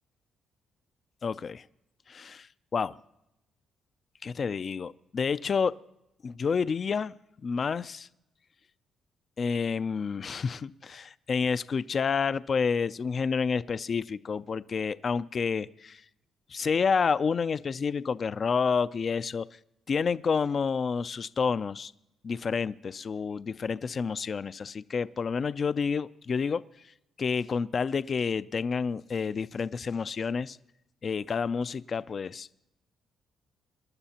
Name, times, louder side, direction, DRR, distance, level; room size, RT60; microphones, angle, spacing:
voice 1, 1.2-1.6 2.1-2.5 2.7-3.0 4.2-5.7 6.2-7.1 7.4-8.1 9.4-16.0 16.5-19.5 19.9-21.9 22.2-26.6 27.2-30.6 31.0-32.5, left 5 dB, 45° left, 15 dB, 0.4 m, -29 dB
25.5 x 11.5 x 2.9 m, 0.86 s
cardioid pair, 90°, 0 cm